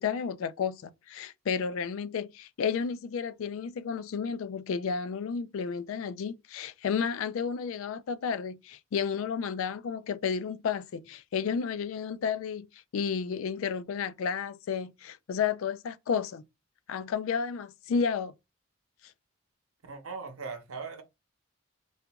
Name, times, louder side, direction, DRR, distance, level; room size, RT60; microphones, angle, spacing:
voice 1, 0.0-12.7 12.9-16.4 16.9-18.3, left 6 dB, 75° left, 0.3 m, -32 dB
voice 2, 19.8-21.0, right 4 dB, 85° right, 0.8 m, -39 dB
2.8 x 2.4 x 3.4 m
head